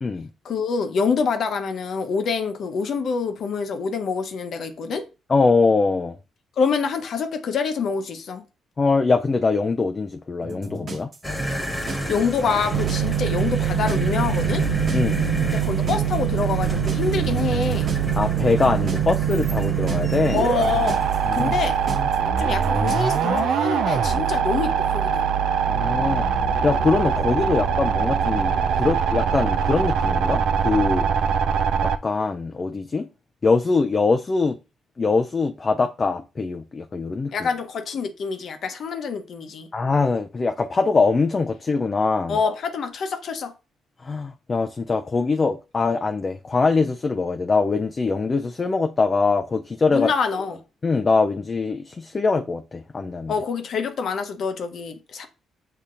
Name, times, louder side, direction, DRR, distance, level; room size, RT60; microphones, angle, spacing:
voice 1, 0.4-5.0 6.6-8.4 12.1-14.6 15.5-17.9 20.3-21.0 21.3-21.8 22.4-25.2 37.3-39.7 42.3-43.5 49.9-50.6 53.3-55.3, left 5 dB, 60° left, 0.8 m, -26 dB
voice 2, 5.3-6.2 8.8-11.1 14.9-15.3 18.1-20.4 21.3-21.5 25.7-26.3 26.6-31.1 31.8-33.1 33.4-34.6 35.0-37.5 39.7-42.4 44.0-50.1 50.8-53.3, left 4 dB, 30° left, 0.3 m, -22 dB
sound 1, 10.4-23.4, right 2 dB, 45° right, 1.1 m, -33 dB
sound 2, 11.2-22.6, left 1 dB, 10° left, 1.4 m, -32 dB
sound 3, 12.7-32.0, right 8 dB, 80° right, 0.4 m, -23 dB
6.7 x 2.8 x 2.5 m
cardioid pair, 90°, 0 cm